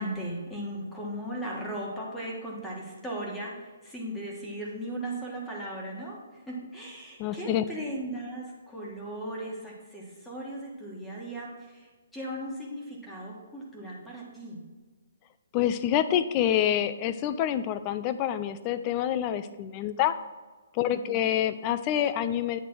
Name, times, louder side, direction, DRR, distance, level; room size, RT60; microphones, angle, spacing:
voice 1, 0.0-14.6 20.9-21.3, right 1 dB, 5° left, -3 dB, 1.4 m, -37 dB
voice 2, 7.2-7.6 15.5-20.1 20.7-22.6, left 10 dB, 25° left, 12 dB, 0.4 m, -27 dB
8.6 x 3.3 x 6.1 m, 1.3 s
hypercardioid pair, 155°, 0 cm